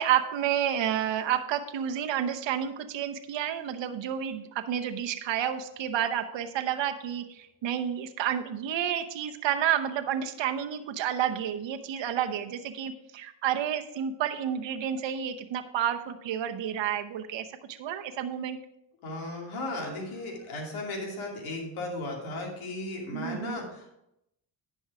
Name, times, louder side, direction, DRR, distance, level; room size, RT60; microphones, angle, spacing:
voice 1, 0.0-18.6 23.1-23.6, right 10 dB, 65° right, 7 dB, 0.9 m, -30 dB
voice 2, 19.0-23.9, left 2 dB, 90° left, 0 dB, 2.6 m, -36 dB
10.5 x 5.5 x 4.8 m, 0.82 s
cardioid pair, 75°, 47 cm